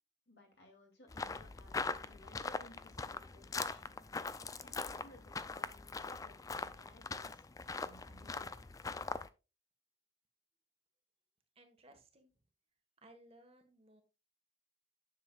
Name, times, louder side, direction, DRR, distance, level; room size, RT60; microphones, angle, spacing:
voice 1, 0.3-8.7, left 1 dB, 60° left, 1 dB, 2.6 m, -61 dB
sound 1, 1.1-9.3, left 4 dB, 20° left, 0.3 m, -42 dB
voice 2, 11.5-12.3 13.0-14.0, right 1 dB, 30° right, 5 dB, 1.3 m, -61 dB
10.0 x 6.7 x 2.3 m, 0.29 s
head